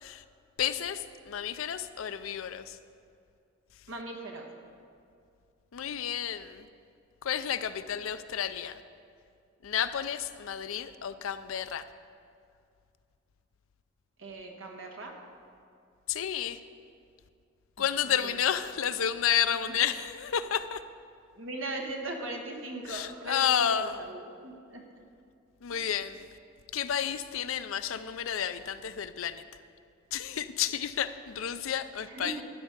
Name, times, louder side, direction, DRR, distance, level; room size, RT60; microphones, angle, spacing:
voice 1, 0.6-2.8 5.7-6.7 7.2-8.8 9.6-11.8 16.1-16.6 17.8-20.8 22.9-24.1 25.6-26.3 26.7-29.4 30.1-32.4, left 9 dB, 85° left, 12 dB, 0.5 m, -31 dB
voice 2, 3.9-4.5 14.2-15.1 18.2-18.3 21.4-23.5 23.8-24.8 25.7-25.8 32.1-32.3, right 2 dB, 75° right, 2 dB, 1.4 m, -39 dB
12.0 x 5.2 x 8.1 m, 2.4 s
head